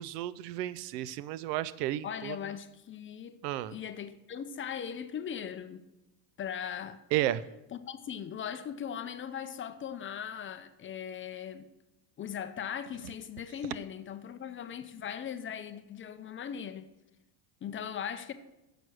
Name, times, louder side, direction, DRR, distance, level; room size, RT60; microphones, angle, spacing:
voice 1, 0.0-2.4 3.4-3.8 7.1-7.4, right 13 dB, 85° right, 0.6 m, -32 dB
voice 2, 2.0-3.4 3.7-5.8 6.4-7.0 7.7-11.7 12.2-16.9 17.6-18.3, left 8 dB, 25° left, 0.5 m, -39 dB
6.9 x 6.1 x 6.2 m
supercardioid pair, 105°, 48 cm